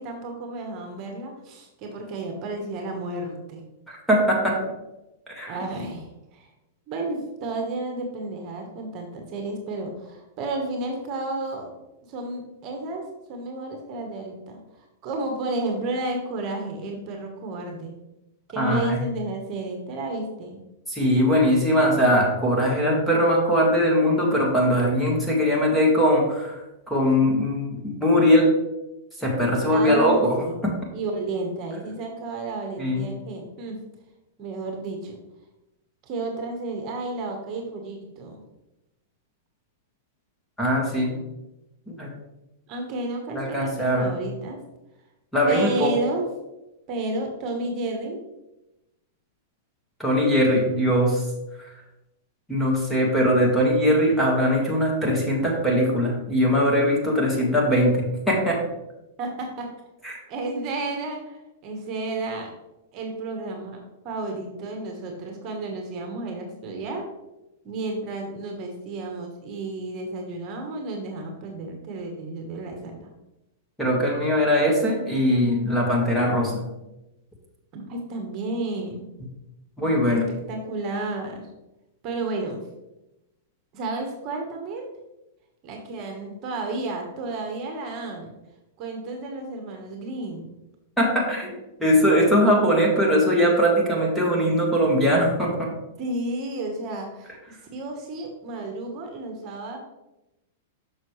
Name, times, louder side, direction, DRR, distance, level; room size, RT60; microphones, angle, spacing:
voice 1, 0.0-3.6 5.5-6.5 6.9-11.7 12.1-14.6 15.0-18.0 18.5-20.6 29.7-30.6 30.9-33.8 34.4-35.2 36.0-38.4 42.7-44.6 45.5-46.3 46.9-48.2 59.2-59.7 60.3-62.5 62.9-67.1 67.6-73.1 77.7-79.1 80.1-81.5 82.0-82.6 83.7-84.9 85.6-88.3 88.8-90.5 96.0-99.8, right 2 dB, 40° right, 3 dB, 1.3 m, -32 dB
voice 2, 3.9-4.6 5.3-5.6 18.6-19.0 20.9-26.6 26.9-28.5 29.2-30.4 30.6-30.7 32.8-33.0 40.6-41.2 41.9-42.1 43.3-44.1 45.3-45.9 50.0-51.2 52.5-58.6 60.0-60.1 73.8-76.7 79.8-80.3 91.0-91.5 91.8-95.7, equal, 5° left, -2 dB, 1.7 m, -21 dB
6.3 x 6.3 x 3.2 m, 0.94 s
hypercardioid pair, 130°, 0 cm